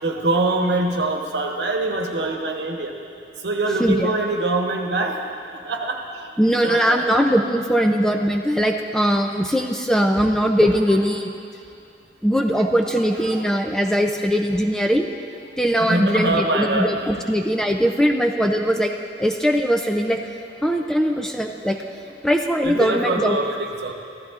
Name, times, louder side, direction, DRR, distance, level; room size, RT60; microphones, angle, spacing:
voice 1, 0.0-2.9 3.4-6.4 6.6-7.0 9.0-9.2 10.7-11.0 12.4-13.3 13.8-13.9 15.8-17.2 21.8-22.0 22.6-23.9, right 2 dB, 75° right, 2 dB, 1.1 m, -25 dB
voice 2, 3.8-4.1 6.4-11.3 12.2-15.1 15.6-18.9 19.2-20.2 20.6-21.8 22.2-23.4, equal, 5° left, 3 dB, 0.3 m, -20 dB
14.5 x 13.0 x 2.4 m, 2.4 s
head